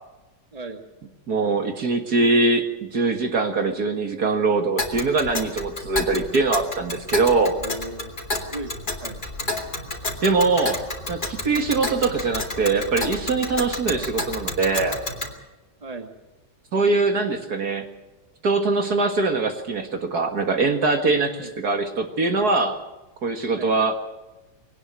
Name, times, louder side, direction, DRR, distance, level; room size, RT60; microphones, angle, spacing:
voice 1, 0.5-0.8 7.3-8.1 8.5-9.2 13.9-14.1 15.8-16.1 21.3-21.6 23.5-23.7, right 2 dB, 20° right, 5 dB, 2.0 m, -36 dB
voice 2, 1.3-7.5 10.2-10.8 11.1-15.0 16.7-17.9 18.4-22.8 23.2-24.0, right 3 dB, 55° right, 5 dB, 2.2 m, -22 dB
Tick, 4.8-15.3, left 2 dB, 25° left, 2.6 m, -31 dB
22.0 x 18.5 x 6.3 m, 1.1 s
omnidirectional pair, 2.0 m